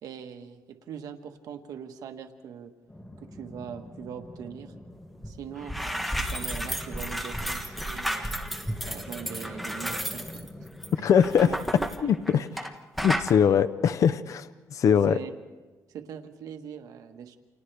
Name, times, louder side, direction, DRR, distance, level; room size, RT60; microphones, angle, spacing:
voice 1, 0.0-2.7 3.2-4.7 5.2-8.3 8.8-10.2 11.0-11.1 11.4-12.4 15.1-15.3 15.9-17.4, right 8 dB, 85° right, 6 dB, 1.4 m, -41 dB
sound 1, 2.9-11.8, left 1 dB, 15° left, 2.3 m, -45 dB
sound 2, 5.2-5.3 5.6-12.7 13.0-13.3, equal, ahead, 1.4 m, -32 dB
voice 2, 11.0-11.5 12.0-12.5 13.0-15.2, left 7 dB, 60° left, 13 dB, 0.6 m, -22 dB
29.5 x 28.0 x 3.4 m, 1.3 s
cardioid pair, 130°, 6 cm